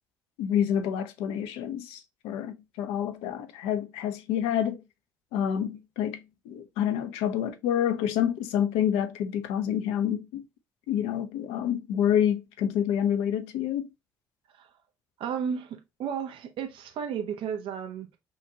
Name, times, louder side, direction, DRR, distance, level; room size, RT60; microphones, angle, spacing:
voice 1, 0.4-4.8 5.3-6.2 6.5-10.4 10.9-13.9, left 9 dB, 65° left, 0.7 m, -28 dB
voice 2, 15.2-18.2, right 7 dB, 55° right, 1.1 m, -33 dB
5.7 x 2.5 x 2.7 m
figure-of-eight pair, 50°, 11 cm